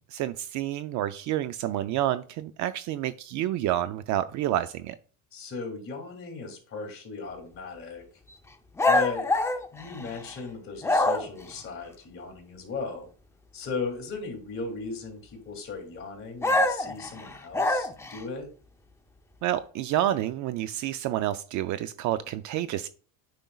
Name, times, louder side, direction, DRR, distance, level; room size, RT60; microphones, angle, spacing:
voice 1, 0.1-5.0 19.4-22.9, right 13 dB, 45° right, 12 dB, 0.5 m, -29 dB
voice 2, 5.3-8.0 8.9-9.3 9.7-13.1 13.5-18.5, left 4 dB, 30° left, 3 dB, 2.6 m, -37 dB
sound 1, 8.8-10.4 10.8-11.5 16.4-18.2, left 2 dB, 5° left, 0.6 m, -25 dB
9.0 x 5.3 x 2.3 m, 0.40 s
supercardioid pair, 125°, 41 cm